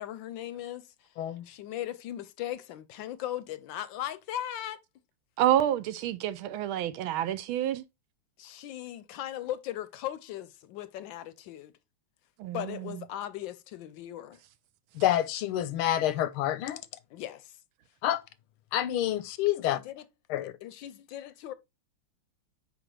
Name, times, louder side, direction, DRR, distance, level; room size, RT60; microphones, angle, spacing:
voice 1, 0.0-1.1 1.5-4.8 8.4-11.7 12.5-14.4 17.1-17.6 19.7-20.0 20.6-21.5, left 12 dB, 75° left, 1.2 m, -38 dB
voice 2, 1.2-1.5 14.9-16.8 18.0-18.2 18.7-19.8 20.3-20.5, left 12 dB, 90° left, 1.5 m, -28 dB
voice 3, 5.4-7.8 12.4-13.0, right 11 dB, 80° right, 1.4 m, -28 dB
6.1 x 5.0 x 3.2 m
omnidirectional pair, 2.3 m